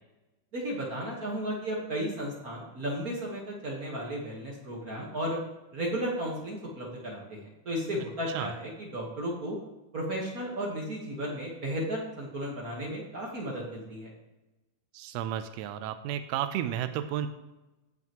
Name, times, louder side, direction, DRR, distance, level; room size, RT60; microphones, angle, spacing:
voice 1, 0.5-5.4 5.7-9.6 9.9-14.1, equal, 50° right, -3 dB, 1.1 m, -34 dB
voice 2, 14.9-17.3, right 10 dB, 85° right, 9 dB, 1.5 m, -32 dB
16.5 x 5.9 x 3.0 m, 1.0 s
omnidirectional pair, 3.6 m